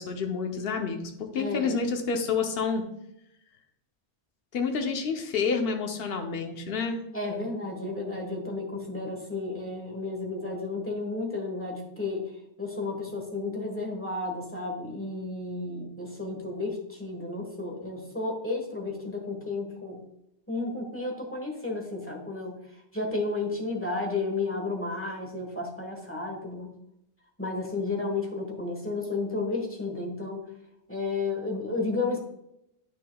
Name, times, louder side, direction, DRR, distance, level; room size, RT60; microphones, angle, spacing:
voice 1, 0.0-2.9 4.5-7.0, left 5 dB, 60° left, 4 dB, 1.0 m, -29 dB
voice 2, 1.3-1.8 7.1-12.3 12.6-20.0 20.5-22.6 22.9-26.8 27.4-30.5 30.9-32.2, left 3 dB, 10° left, 0 dB, 1.3 m, -32 dB
9.7 x 6.4 x 2.3 m, 0.80 s
omnidirectional pair, 1.2 m